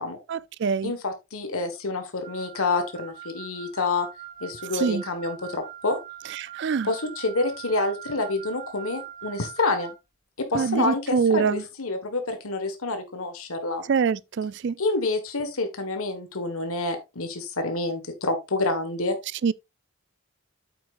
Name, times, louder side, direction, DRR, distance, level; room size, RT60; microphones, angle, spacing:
voice 1, 0.3-0.9 4.7-5.0 6.3-6.9 10.5-11.6 13.9-14.8 19.4-19.5, right 6 dB, 50° right, 0.3 m, -24 dB
voice 2, 0.8-4.1 4.4-6.0 6.8-9.9 10.5-13.8 14.8-19.2, left 3 dB, 75° left, 1.5 m, -28 dB
Wind instrument woodwind instrument, 2.2-10.0, right 12 dB, 35° right, 1.5 m, -42 dB
8.7 x 8.4 x 2.5 m
head